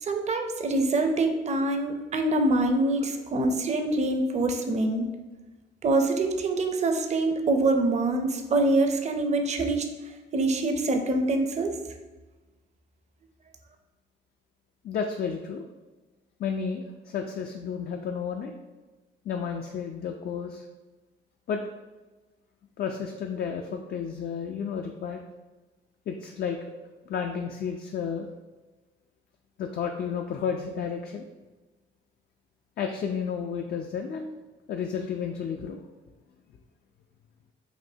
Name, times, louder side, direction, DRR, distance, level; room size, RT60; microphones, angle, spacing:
voice 1, 0.0-5.1 5.8-9.9 10.3-11.9, right 2 dB, 35° right, 5 dB, 0.5 m, -25 dB
voice 2, 14.8-15.6 16.4-18.5 19.2-20.6 21.5-21.6 22.8-25.2 26.1-26.6 27.0-28.3 29.6-31.3 32.8-34.4 34.7-35.8, left 6 dB, 50° left, 3 dB, 0.4 m, -32 dB
5.1 x 2.7 x 2.7 m, 1.2 s
cardioid pair, 90°, 20 cm